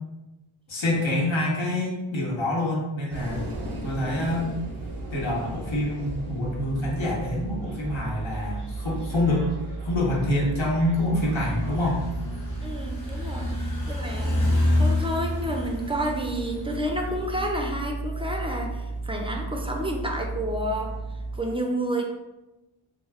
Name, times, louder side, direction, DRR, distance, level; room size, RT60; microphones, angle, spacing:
voice 1, 0.7-3.4 3.8-4.5 5.1-9.5 9.8-12.0, left 1 dB, 70° left, -3 dB, 0.9 m, -26 dB
sound 1, 3.1-21.4, right 3 dB, 80° right, 0.7 m, -35 dB
sound 2, 11.1-17.4, left 1 dB, 40° left, 1.0 m, -28 dB
voice 2, 12.6-21.0 21.3-22.0, equal, 15° right, 2 dB, 0.3 m, -30 dB
2.3 x 2.2 x 3.3 m, 1.0 s
wide cardioid pair, 40°, 48 cm